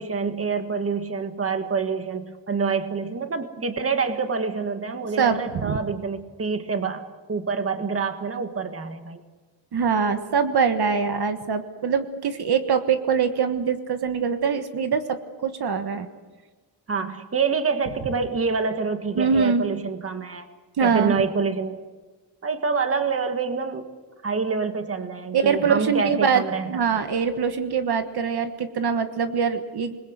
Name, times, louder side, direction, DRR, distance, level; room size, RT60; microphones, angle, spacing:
voice 1, 0.0-7.0 7.3-9.2 16.9-20.4 20.8-21.8 22.4-23.9 24.2-26.8, right 5 dB, 35° right, 7 dB, 1.7 m, -26 dB
voice 2, 5.2-5.8 9.7-15.2 15.4-16.1 19.2-19.6 20.8-21.2 25.3-26.4 26.7-30.0, right 6 dB, 70° right, 8 dB, 1.5 m, -23 dB
26.5 x 21.5 x 8.0 m, 1.3 s
wide cardioid pair, 180°, 41 cm